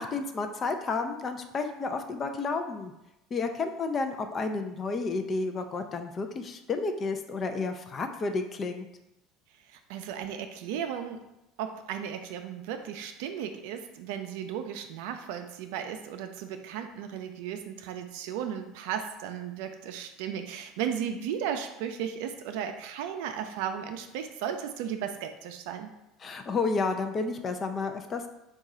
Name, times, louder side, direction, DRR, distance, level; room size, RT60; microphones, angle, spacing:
voice 1, 0.0-2.9 3.3-8.9 26.2-28.3, left 4 dB, 35° left, 6 dB, 0.4 m, -31 dB
voice 2, 9.9-11.2 11.6-25.9, right 8 dB, 80° right, 7 dB, 0.4 m, -35 dB
3.7 x 2.4 x 4.1 m, 0.90 s
supercardioid pair, 95°, 0 cm